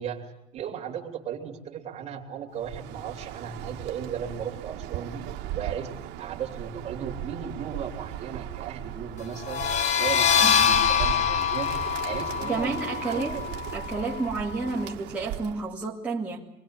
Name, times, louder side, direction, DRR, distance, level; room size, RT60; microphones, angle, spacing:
voice 1, 0.0-5.2 5.5-9.6 10.0-11.7 12.0-13.4, right 8 dB, 40° right, 2 dB, 3.2 m, -36 dB
Bird, 2.6-15.7, right 12 dB, 75° right, 1.9 m, -38 dB
sound 1, 9.4-14.9, left 7 dB, 40° left, 1.2 m, -25 dB
voice 2, 10.4-10.8 12.4-13.4 13.7-16.5, right 3 dB, 10° right, -5 dB, 2.3 m, -31 dB
25.5 x 20.0 x 9.0 m, 0.83 s
cardioid pair, 165°, 17 cm